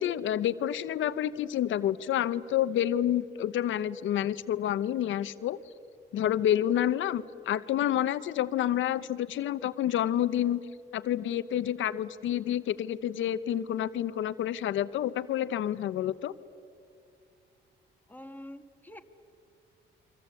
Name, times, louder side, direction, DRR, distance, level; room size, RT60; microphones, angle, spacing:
voice 1, 0.0-5.6 6.1-10.6 10.9-16.3, left 11 dB, 75° left, 14 dB, 1.0 m, -29 dB
voice 2, 18.1-19.0, left 1 dB, 10° left, 6 dB, 1.9 m, -46 dB
29.5 x 23.5 x 8.4 m, 2.5 s
cardioid pair, 90°, 20 cm